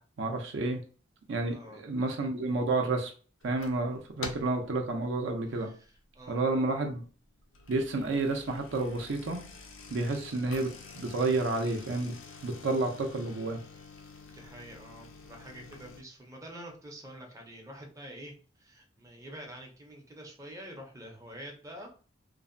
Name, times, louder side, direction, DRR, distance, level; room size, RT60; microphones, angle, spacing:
voice 1, 0.2-0.8 1.3-3.1 3.4-5.7 6.3-7.0 7.7-9.4 9.9-12.1 12.4-13.6, right 2 dB, 70° right, 4 dB, 0.5 m, -30 dB
voice 2, 1.5-1.8 3.9-4.0 5.5-6.4 9.9-10.1 14.2-21.9, right 1 dB, 15° right, 1 dB, 0.5 m, -47 dB
sound 1, 3.4-3.9 4.2-4.7 5.1-5.4 6.0-6.1 6.3-6.4 7.4-16.0, left 4 dB, 90° left, 0.5 m, -47 dB
2.6 x 2.1 x 2.5 m, 0.38 s
head